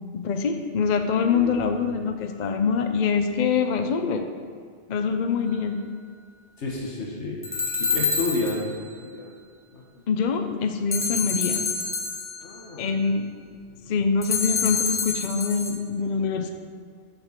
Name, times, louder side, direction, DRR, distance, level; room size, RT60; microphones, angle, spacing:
voice 1, 0.1-4.3 4.9-5.8 10.1-11.7 12.8-13.3 13.9-16.5, left 5 dB, 50° left, 6 dB, 0.6 m, -24 dB
voice 2, 1.2-1.8 6.6-9.3 9.7-10.0 12.4-12.9 13.6-13.9, left 2 dB, 75° left, -2 dB, 1.5 m, -32 dB
sound 1, 7.4-8.8 10.9-12.6 14.2-15.7, left 5 dB, 10° left, 1.3 m, -27 dB
7.7 x 5.3 x 6.6 m, 2.1 s
omnidirectional pair, 1.2 m